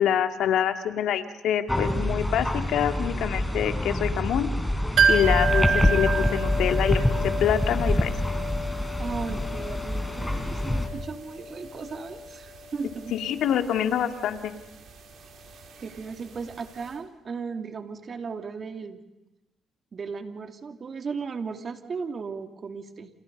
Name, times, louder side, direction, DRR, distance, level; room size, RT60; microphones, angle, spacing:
voice 1, 0.0-4.5 5.1-7.0 7.4-8.1 13.1-14.5, left 9 dB, 80° left, 7 dB, 2.3 m, -25 dB
sound 1, 1.7-10.9, left 1 dB, 10° left, 4.7 m, -26 dB
sound 2, 5.0-16.6 16.8-16.9, right 3 dB, 65° right, 4.6 m, -30 dB
voice 2, 9.0-13.1 15.8-19.0 19.9-23.1, right 5 dB, 45° right, 6 dB, 2.8 m, -36 dB
29.5 x 28.5 x 5.5 m, 0.98 s
cardioid pair, 90°, 0 cm